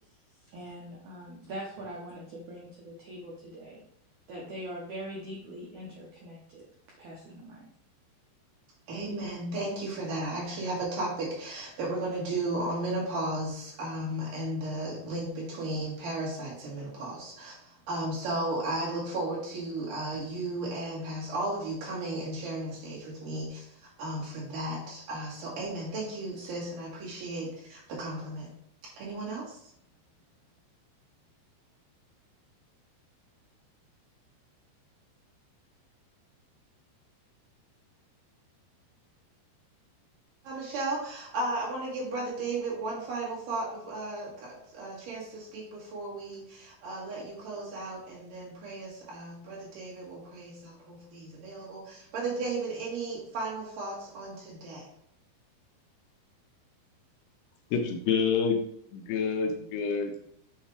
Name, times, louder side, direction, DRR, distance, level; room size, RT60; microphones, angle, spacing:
voice 1, 0.5-3.8 4.3-6.6 7.0-7.7, right 1 dB, 70° right, -3 dB, 1.8 m, -42 dB
voice 2, 8.9-28.5 29.0-29.6 40.4-54.9, right 2 dB, 55° right, -6 dB, 3.3 m, -35 dB
voice 3, 57.7-58.6 58.9-60.3, left 6 dB, 80° left, 4 dB, 2.6 m, -28 dB
7.5 x 3.2 x 4.8 m, 0.69 s
omnidirectional pair, 4.9 m